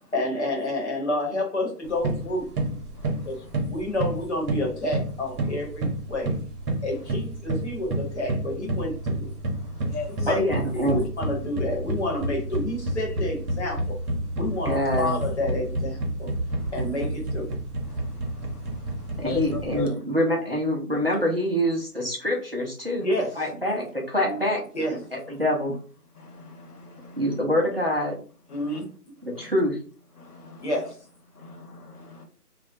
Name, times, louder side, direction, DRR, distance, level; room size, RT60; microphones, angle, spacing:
voice 1, 0.1-2.5 3.3-6.3 6.8-9.3 10.1-10.5 10.7-14.0 14.3-16.3 16.7-17.6 23.0-23.4 24.7-25.0 28.5-28.9 30.6-31.1, left 1 dB, 45° left, 1.0 m, -29 dB
sound 1, 1.8-19.9, right 1 dB, 70° right, 0.8 m, -30 dB
voice 2, 2.9-3.6 9.5-10.3 16.5-17.0 17.8-20.0 24.2-24.4 26.1-27.4 28.5-28.8 29.3-29.5 30.2-30.7 31.3-32.2, left 4 dB, 75° left, 1.0 m, -39 dB
voice 3, 10.3-11.0 14.6-15.2 19.2-23.1 23.4-24.6 25.1-25.8 27.1-28.1 29.2-29.8, equal, 40° right, 0.5 m, -25 dB
2.3 x 2.1 x 2.6 m
figure-of-eight pair, 170°, 47 cm